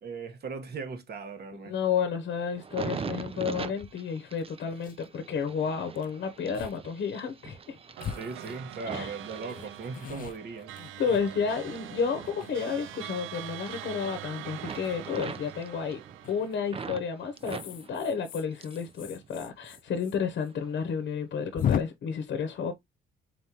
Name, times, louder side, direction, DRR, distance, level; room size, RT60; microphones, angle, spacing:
voice 1, 0.0-1.8 8.1-10.7, right 4 dB, 55° right, 1.2 m, -38 dB
voice 2, 1.6-7.8 8.9-9.1 11.0-16.0 16.3-22.7, left 6 dB, 60° left, 0.8 m, -31 dB
sound 1, 2.5-10.2 10.7-13.3 13.5-14.2 14.5-17.0 17.4-18.9 19.2-19.9 20.5-20.7, right 5 dB, 30° right, 0.5 m, -42 dB
sound 2, 3.8-3.9 4.4-4.5 4.7-5.1 6.0-6.1 6.5-6.8 7.1-7.2 8.0-9.0 9.5-11.7 12.2-13.0 14.7-15.0 16.2-16.6 17.4-20.2 20.4-20.5 20.8-20.9 21.6-21.8, left 9 dB, 45° left, 0.4 m, -36 dB
sound 3, 8.0-17.6, right 14 dB, 80° right, 0.4 m, -43 dB
4.2 x 3.6 x 2.8 m
cardioid pair, 90°, 20 cm